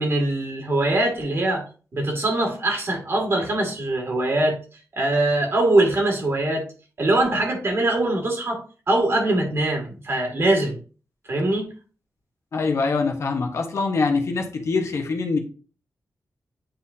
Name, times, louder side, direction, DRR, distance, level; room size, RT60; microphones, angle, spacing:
voice 1, 0.0-1.6 1.9-4.6 4.9-6.6 7.0-10.8 11.3-11.7, right 2 dB, 45° right, 1 dB, 2.3 m, -22 dB
voice 2, 12.5-15.4, left 4 dB, 55° left, 3 dB, 1.2 m, -24 dB
9.2 x 4.2 x 2.7 m, 0.36 s
wide cardioid pair, 145°, 6 cm